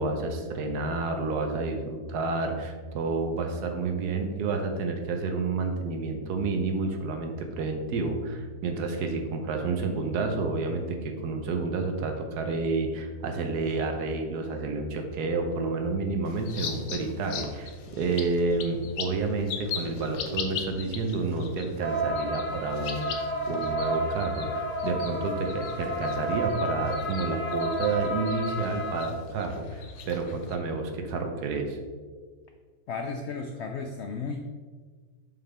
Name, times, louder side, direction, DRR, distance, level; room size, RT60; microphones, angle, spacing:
voice 1, 0.0-31.8, right 3 dB, 75° right, 4 dB, 1.4 m, -30 dB
sound 1, 16.2-30.5, left 6 dB, 60° left, 0.8 m, -40 dB
sound 2, 21.8-29.1, right 1 dB, 10° left, 0.6 m, -31 dB
voice 2, 32.9-34.6, left 4 dB, 90° left, 5 dB, 0.6 m, -34 dB
7.3 x 5.3 x 3.4 m, 1.5 s
omnidirectional pair, 1.7 m